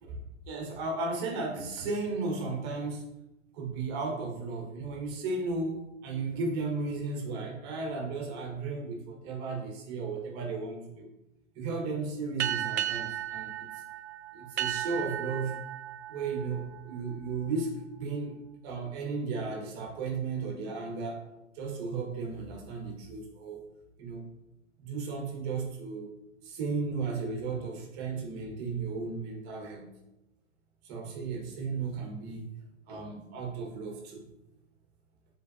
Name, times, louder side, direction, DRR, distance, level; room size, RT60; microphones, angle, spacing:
voice 1, 0.5-3.0 3.5-11.1 11.5-13.7 14.3-15.6 16.1-18.4 18.6-21.2 21.5-23.6 24.0-24.2 24.8-26.1 26.4-29.9 30.8-32.5 32.9-34.3, right 4 dB, 25° right, 1 dB, 1.4 m, -35 dB
sound 1, 12.4-17.5, right 11 dB, 55° right, 0.4 m, -35 dB
9.2 x 4.0 x 2.7 m, 0.88 s
figure-of-eight pair, 120°, 40 cm